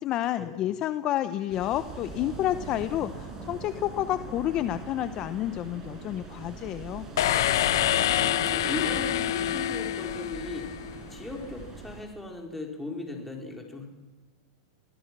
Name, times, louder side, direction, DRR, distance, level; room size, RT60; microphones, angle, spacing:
voice 1, 0.0-7.1, left 12 dB, 35° left, 12 dB, 0.8 m, -30 dB
sound 1, 1.5-12.0, right 4 dB, 25° right, 5.9 m, -41 dB
sound 2, 7.2-11.0, left 12 dB, 70° left, 1.0 m, -26 dB
voice 2, 8.1-10.7 11.1-13.9, left 2 dB, 5° left, 1 dB, 4.4 m, -37 dB
26.0 x 17.5 x 6.1 m, 1.3 s
supercardioid pair, 135°, 2 cm